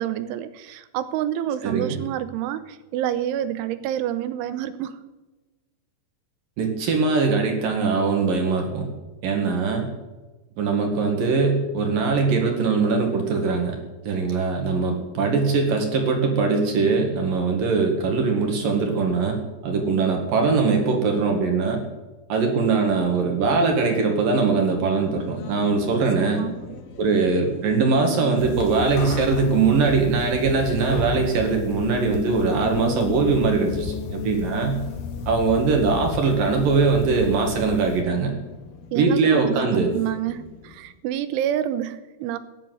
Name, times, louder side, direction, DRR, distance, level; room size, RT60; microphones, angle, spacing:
voice 1, 0.0-4.9 26.4-26.8 38.9-42.4, right 11 dB, 90° right, 13 dB, 3.3 m, -28 dB
voice 2, 1.6-2.0 6.6-8.9 9.2-9.9 10.6-13.8 14.0-19.4 19.6-21.8 22.3-26.4 27.0-34.8 35.3-38.3 38.9-39.9, right 4 dB, 55° right, 3 dB, 3.2 m, -21 dB
Race car auto racing, 24.7-40.9, left 6 dB, 65° left, 2.9 m, -37 dB
sound 1, 28.4-38.0, left 4 dB, 85° left, 4.4 m, -34 dB
16.5 x 11.5 x 7.8 m, 1.1 s
omnidirectional pair, 5.4 m